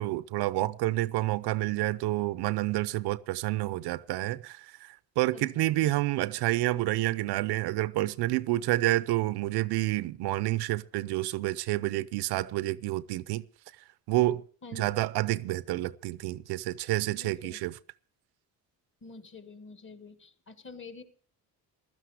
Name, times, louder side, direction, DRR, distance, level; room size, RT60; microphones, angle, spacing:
voice 1, 0.0-13.4 14.1-14.4 14.7-17.7, right 17 dB, 90° right, 0.7 m, -29 dB
voice 2, 5.3-5.9 14.6-14.9 17.2-17.6 19.0-21.0, left 4 dB, 30° left, 1.8 m, -47 dB
15.5 x 12.5 x 4.9 m
cardioid pair, 130°, 38 cm